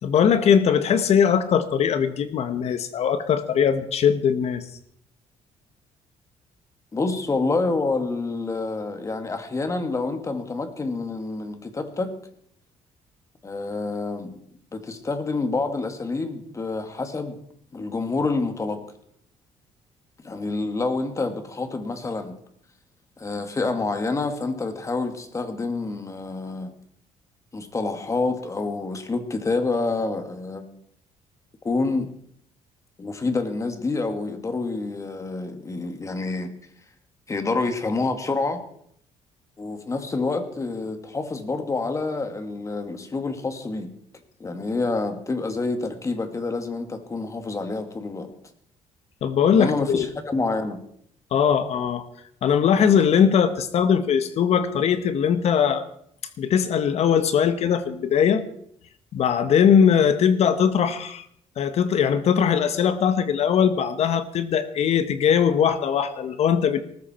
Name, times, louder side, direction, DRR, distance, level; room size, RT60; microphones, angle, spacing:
voice 1, 0.0-4.6 49.2-50.1 51.3-52.0 52.4-55.9 56.4-58.4 59.1-61.2 61.6-66.8, left 7 dB, 60° left, 11 dB, 1.4 m, -20 dB
voice 2, 6.9-12.1 13.4-14.4 14.7-17.4 17.7-18.8 20.2-22.3 23.2-26.7 27.5-30.7 31.6-32.1 33.0-36.5 37.3-38.6 39.6-43.9 44.4-48.3 49.5-50.8, left 3 dB, 25° left, 8 dB, 2.2 m, -27 dB
19.0 x 14.0 x 4.5 m, 0.66 s
cardioid pair, 110°, 12 cm